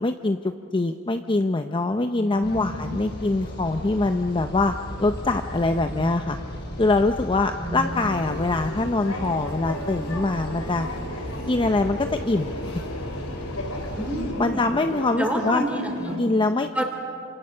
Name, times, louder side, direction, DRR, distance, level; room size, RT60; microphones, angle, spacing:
voice 1, 0.0-4.7 5.0-6.4 6.8-10.9 11.5-12.8 14.4-15.6 16.2-16.8, left 2 dB, 25° left, 7 dB, 0.6 m, -24 dB
voice 2, 2.2-2.9 5.9-6.0 7.5-8.0 14.0-14.7 15.2-16.2 16.7-16.8, right 1 dB, 5° right, 3 dB, 3.3 m, -29 dB
sound 1, 2.4-14.3, equal, 55° left, 5.9 m, -36 dB
sound 2, 7.8-16.2, left 1 dB, 75° left, 3.7 m, -35 dB
28.5 x 26.5 x 6.7 m, 2.6 s
head